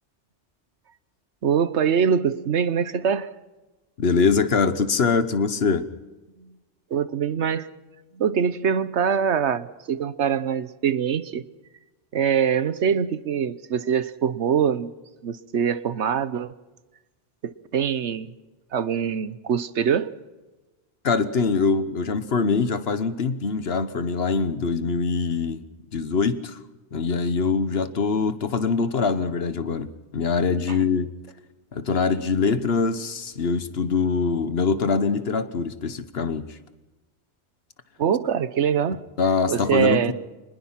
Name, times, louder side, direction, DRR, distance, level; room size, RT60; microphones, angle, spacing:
voice 1, 1.4-3.3 6.4-6.5 6.9-7.7 8.1-11.4 12.1-14.9 15.2-16.5 17.4-18.3 18.7-20.1 30.7-30.8 38.0-39.0 39.5-40.1, right 7 dB, 75° right, 15 dB, 1.2 m, -23 dB
voice 2, 4.0-5.9 21.0-25.6 25.9-26.6 26.9-31.1 31.7-36.6 39.2-40.1, left 5 dB, 60° left, 12 dB, 1.3 m, -23 dB
24.5 x 20.5 x 5.8 m, 1.2 s
omnidirectional pair, 1.2 m